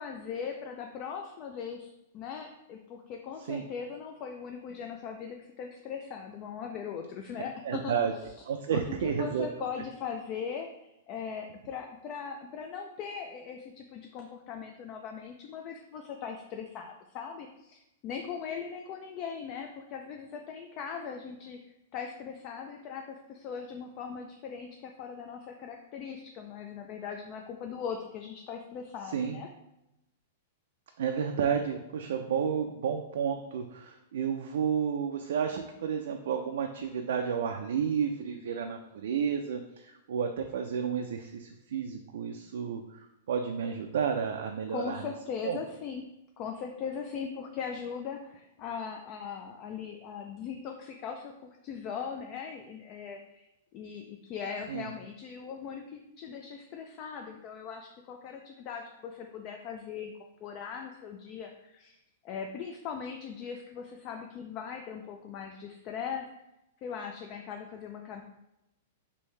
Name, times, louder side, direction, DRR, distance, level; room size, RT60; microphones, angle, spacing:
voice 1, 0.0-8.0 8.7-21.6 21.9-29.5 44.7-46.1 46.4-60.1 60.4-62.0 62.2-66.3 66.8-68.2, left 6 dB, 40° left, 3 dB, 0.3 m, -39 dB
voice 2, 7.6-8.1 8.5-9.5 29.1-29.4 31.0-45.1 45.4-45.6 54.7-54.9, right 7 dB, 75° right, 4 dB, 0.3 m, -31 dB
3.2 x 2.6 x 3.2 m, 0.89 s
hypercardioid pair, 135°, 0 cm